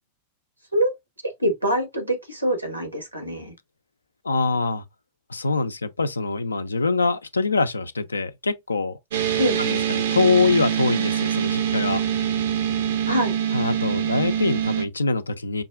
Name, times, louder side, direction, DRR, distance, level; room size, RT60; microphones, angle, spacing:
voice 1, 1.4-3.5 9.4-9.6 13.1-13.4, equal, 90° right, 1.1 m, -24 dB
voice 2, 4.2-4.8 5.3-9.0 9.6-12.0 13.5-15.6, left 3 dB, 80° left, 0.4 m, -24 dB
sound 1, 9.1-14.9, right 9 dB, 60° right, 0.6 m, -24 dB
5.3 x 2.3 x 2.3 m
figure-of-eight pair, 90°, 0 cm